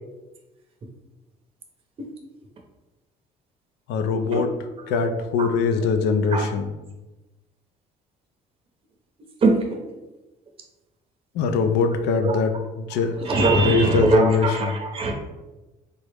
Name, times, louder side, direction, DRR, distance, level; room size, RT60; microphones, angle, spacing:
voice 1, 3.9-4.5 4.9-6.7 11.4-13.1 13.5-14.8, left 5 dB, 85° left, 7 dB, 0.4 m, -22 dB
voice 2, 13.2-15.1, right 3 dB, 35° right, 1 dB, 0.6 m, -21 dB
3.5 x 2.0 x 3.2 m, 1.1 s
cardioid pair, 110°, 17 cm